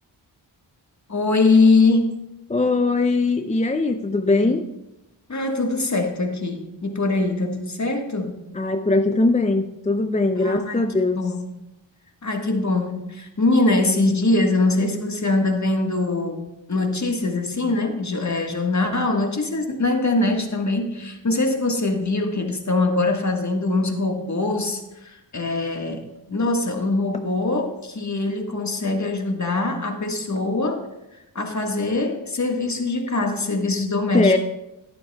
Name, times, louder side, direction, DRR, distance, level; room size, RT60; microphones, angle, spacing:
voice 1, 1.1-2.1 4.4-4.6 5.3-8.4 10.4-10.8 11.1-11.4 12.2-16.4 16.7-30.9 31.3-34.4, left 2 dB, 35° left, 3 dB, 1.5 m, -22 dB
voice 2, 2.5-4.7 8.5-11.2 34.1-34.4, left 2 dB, 15° left, 7 dB, 0.5 m, -20 dB
11.5 x 11.0 x 2.3 m, 0.94 s
cardioid pair, 50°, 47 cm